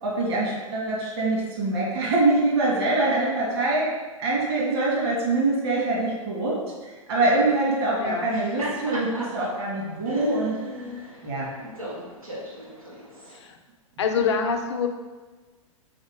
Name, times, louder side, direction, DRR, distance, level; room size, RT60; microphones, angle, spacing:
voice 1, 0.0-3.9 4.2-10.6 11.2-11.5, right 2 dB, 50° right, -4 dB, 2.1 m, -24 dB
voice 2, 8.0-8.4 13.3-13.6 14.0-14.9, left 6 dB, 55° left, 4 dB, 0.8 m, -26 dB
Laughter, 8.2-13.4, equal, 85° right, 2.0 m, -35 dB
6.5 x 4.4 x 3.7 m, 1.3 s
figure-of-eight pair, 105°, 18 cm